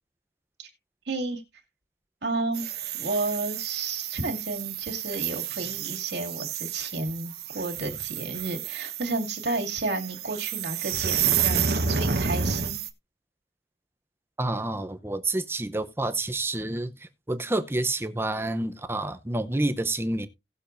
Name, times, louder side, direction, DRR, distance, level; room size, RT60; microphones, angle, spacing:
voice 1, 1.1-1.4 2.2-2.6 3.0-12.8, right 3 dB, 75° right, 2.4 m, -32 dB
sound 1, 2.5-12.9, right 7 dB, 60° right, 1.1 m, -30 dB
voice 2, 14.4-20.3, right 2 dB, 15° right, 0.7 m, -29 dB
18.0 x 6.7 x 2.6 m
head